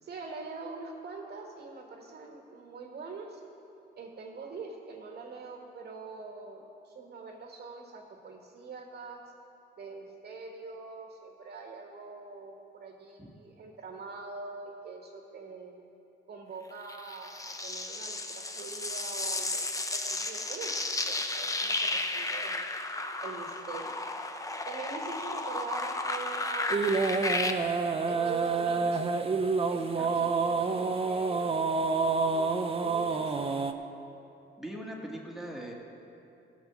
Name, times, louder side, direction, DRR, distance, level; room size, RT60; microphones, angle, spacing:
voice 1, 0.0-3.4 4.0-9.2 9.8-15.8 16.3-20.7 21.1-22.6 23.2-24.0 24.6-27.4 28.1-29.2 29.7-31.8 32.2-33.7, right 4 dB, 55° right, 1 dB, 1.7 m, -43 dB
sound 1, 16.9-27.5, left 2 dB, 15° left, 0.8 m, -33 dB
sound 2, 26.7-33.7, right 4 dB, 30° right, 0.7 m, -28 dB
voice 2, 34.6-35.7, right 1 dB, ahead, -2 dB, 1.9 m, -40 dB
15.5 x 7.3 x 6.1 m, 2.7 s
cardioid pair, 90°, 20 cm